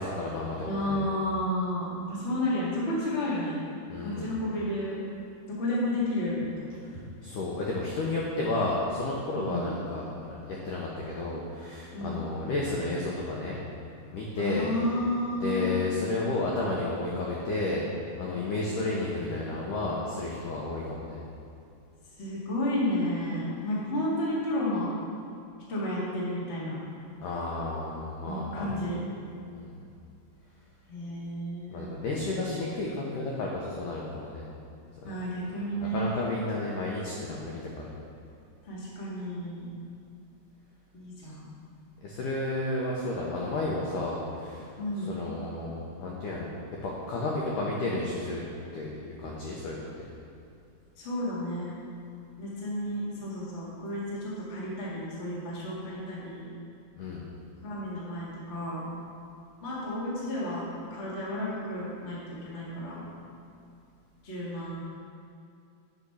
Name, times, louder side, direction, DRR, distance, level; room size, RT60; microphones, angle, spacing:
voice 1, 0.0-1.0 3.9-4.3 7.2-13.6 14.1-14.7 15.3-17.8 18.2-21.2 27.2-28.8 29.5-29.8 31.7-34.4 35.0-35.1 35.8-37.9 42.0-44.7 45.0-46.5 46.8-48.4 48.7-50.1 57.0-57.2, left 2 dB, 85° left, -4 dB, 1.8 m, -32 dB
voice 2, 0.7-3.6 4.0-5.0 5.5-6.7 9.3-9.7 11.9-12.2 14.4-15.8 22.2-24.9 25.7-26.8 28.2-29.0 30.9-32.0 35.0-36.2 38.6-39.7 40.9-41.5 44.8-45.1 51.0-51.7 52.4-56.5 57.6-58.9 59.6-63.1 64.2-64.8, left 1 dB, 50° left, -7 dB, 0.7 m, -32 dB
8.4 x 5.0 x 5.6 m, 2.6 s
omnidirectional pair, 4.8 m